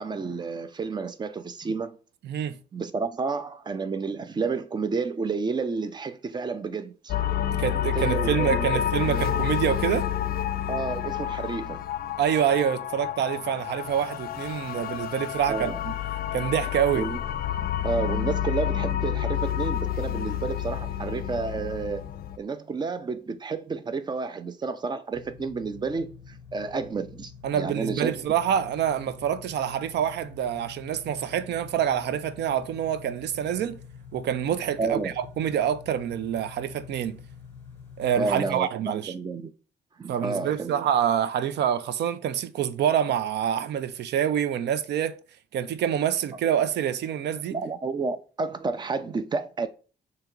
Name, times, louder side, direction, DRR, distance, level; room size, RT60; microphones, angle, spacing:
voice 1, 0.0-2.0 2.7-7.1 8.0-9.4 10.7-11.8 15.5-15.8 16.9-17.2 17.8-22.0 22.4-28.2 34.8-35.1 38.1-39.5 40.0-40.8 47.5-49.7, right 4 dB, 25° right, 0.4 m, -30 dB
voice 2, 2.2-2.6 7.5-10.1 12.2-15.9 16.3-17.1 27.4-33.8 34.1-37.2 38.0-39.1 40.1-45.1 45.5-47.6, right 9 dB, 80° right, 0.5 m, -26 dB
sound 1, 7.1-22.4, left 11 dB, 60° left, 0.4 m, -29 dB
sound 2, 25.1-38.5, left 6 dB, 10° left, 1.0 m, -47 dB
3.6 x 2.9 x 4.5 m
cardioid pair, 140°, 17 cm